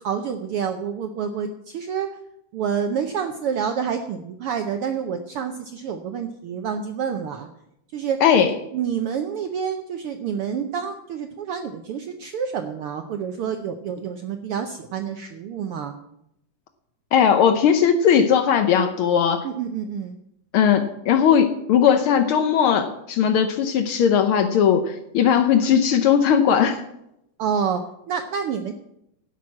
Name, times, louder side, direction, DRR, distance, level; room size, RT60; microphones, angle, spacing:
voice 1, 0.0-2.1 2.5-7.5 7.9-8.2 8.4-15.9 19.4-20.2 27.4-27.8 28.1-28.7, right 7 dB, 80° right, 6 dB, 1.2 m, -28 dB
voice 2, 8.2-8.5 17.1-19.5 20.5-26.8, left 8 dB, 90° left, 8 dB, 1.1 m, -18 dB
12.0 x 6.1 x 8.6 m, 0.81 s
omnidirectional pair, 3.4 m